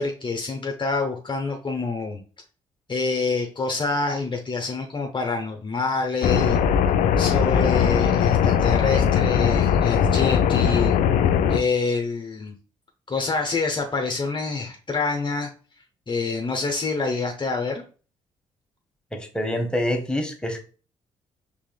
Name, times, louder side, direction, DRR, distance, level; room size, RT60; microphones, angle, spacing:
voice 1, 0.0-2.2 2.9-6.6 7.2-10.9 11.5-12.5 13.1-15.5 16.1-17.8, left 4 dB, 30° left, 3 dB, 0.8 m, -26 dB
sound 1, 6.2-11.6, left 8 dB, 65° left, 0.4 m, -20 dB
voice 2, 19.1-20.6, left 1 dB, 5° left, 4 dB, 1.1 m, -26 dB
4.8 x 3.4 x 2.3 m, 0.37 s
hypercardioid pair, 45°, 15 cm